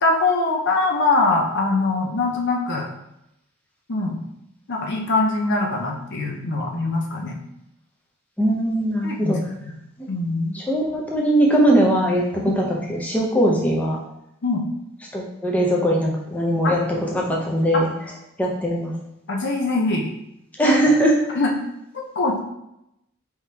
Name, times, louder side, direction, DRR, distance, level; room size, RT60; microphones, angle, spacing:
voice 1, 0.0-2.9 3.9-4.2 4.7-7.3 9.0-9.7 10.1-10.6 12.5-12.6 14.4-14.7 16.6-16.7 17.7-17.8 19.3-20.1 20.6-20.8 21.4-21.5 21.9-22.4, left 3 dB, 55° left, 0 dB, 0.7 m, -22 dB
voice 2, 8.4-9.4 10.5-12.2 12.6-14.0 15.1-17.9 18.4-18.9 20.6-21.2, right 1 dB, 5° left, -3 dB, 0.7 m, -20 dB
4.6 x 3.6 x 2.9 m, 0.82 s
head